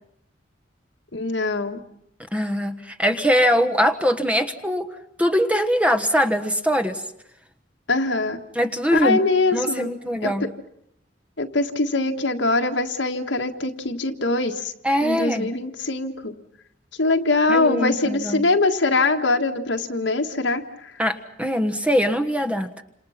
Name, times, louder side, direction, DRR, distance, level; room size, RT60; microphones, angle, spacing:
voice 1, 1.1-1.8 7.9-8.4 8.9-9.9 10.2-10.3 11.4-14.7 15.0-16.3 17.0-20.6, left 2 dB, 75° left, 5 dB, 1.8 m, -22 dB
voice 2, 2.3-4.9 5.2-7.0 8.5-9.2 9.5-10.5 14.8-15.5 17.5-18.4 21.0-22.8, equal, 5° right, 8 dB, 1.3 m, -22 dB
28.5 x 27.0 x 5.9 m, 0.73 s
head